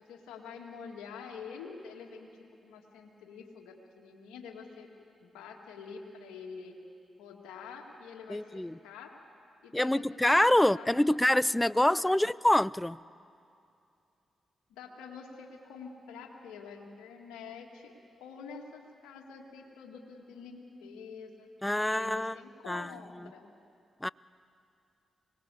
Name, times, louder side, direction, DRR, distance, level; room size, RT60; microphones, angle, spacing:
voice 1, 0.0-2.3 2.6-4.9 5.2-6.7 7.2-9.1 9.6-12.1 14.7-17.9 18.2-21.5 21.8-23.5, left 5 dB, 85° left, 1 dB, 2.1 m, -47 dB
voice 2, 8.3-8.7 9.7-13.0 21.6-22.3 22.7-23.3 24.0-24.1, left 1 dB, 10° left, 21 dB, 0.5 m, -26 dB
25.0 x 19.5 x 8.4 m, 2.5 s
hypercardioid pair, 40°, 0 cm